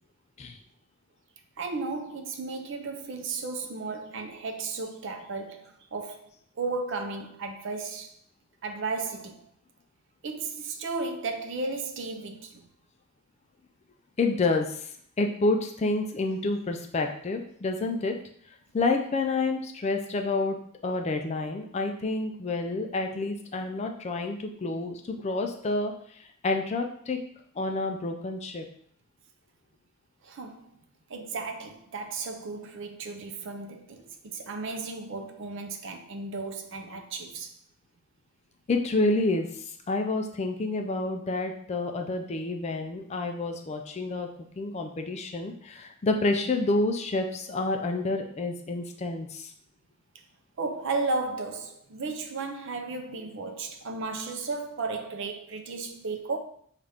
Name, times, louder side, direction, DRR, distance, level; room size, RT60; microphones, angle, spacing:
voice 1, 1.6-6.3 6.6-8.1 8.6-9.5 10.2-12.7 30.2-30.7 31.1-37.5 50.6-56.4, right 3 dB, 55° right, 0.5 m, -34 dB
voice 2, 14.2-14.9 15.2-18.2 18.7-20.6 20.8-27.2 27.6-28.7 38.7-44.3 44.6-49.5, left 2 dB, 30° left, 0.3 m, -29 dB
5.5 x 2.4 x 3.4 m
head